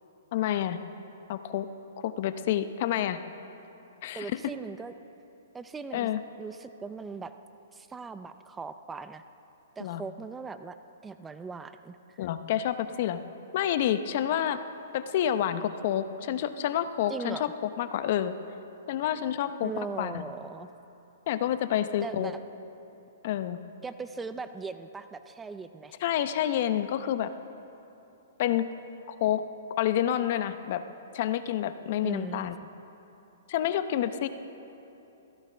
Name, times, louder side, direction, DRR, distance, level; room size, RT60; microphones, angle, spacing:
voice 1, 0.3-0.8 1.3-1.7 2.0-3.2 4.0-4.4 5.9-6.2 9.8-10.0 12.2-13.2 13.5-14.6 14.9-18.3 18.9-19.7 20.0-20.2 21.3-22.3 23.2-23.6 26.0-27.3 28.4-28.7 29.1-29.4 29.8-30.8 31.1-32.6 33.5-34.3, left 11 dB, 50° left, 11 dB, 0.7 m, -28 dB
voice 2, 4.1-4.9 5.5-6.1 6.4-7.3 7.7-9.2 9.8-10.8 11.0-12.3 17.1-17.4 19.6-20.7 22.0-22.4 23.8-26.0 32.0-32.5, right 4 dB, 10° right, 10 dB, 0.5 m, -39 dB
22.0 x 16.0 x 3.4 m, 3.0 s
hypercardioid pair, 135°, 0 cm